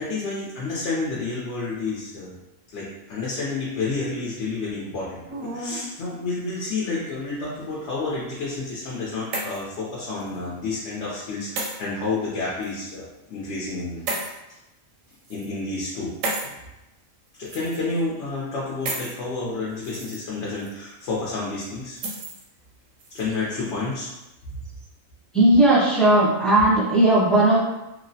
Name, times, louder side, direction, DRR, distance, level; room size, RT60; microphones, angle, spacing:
voice 1, 0.0-2.3 2.7-14.1 15.3-16.1 16.4-16.6 17.4-22.0 23.1-24.1, left 3 dB, 65° left, -5 dB, 0.9 m, -30 dB
sound 1, 5.3-5.9 6.8-7.5 8.8-9.7 10.2-10.4 11.6-11.8 12.6-12.7 14.1-14.3 15.1-15.5 16.2-16.5 17.5-18.0 18.8-19.1 19.7-20.2 20.6-20.7 22.0-22.4 23.0-23.2, right 2 dB, 85° right, 1.0 m, -32 dB
voice 2, 25.3-27.6, right 1 dB, ahead, -8 dB, 0.4 m, -17 dB
3.0 x 2.0 x 2.6 m, 0.95 s
omnidirectional pair, 1.3 m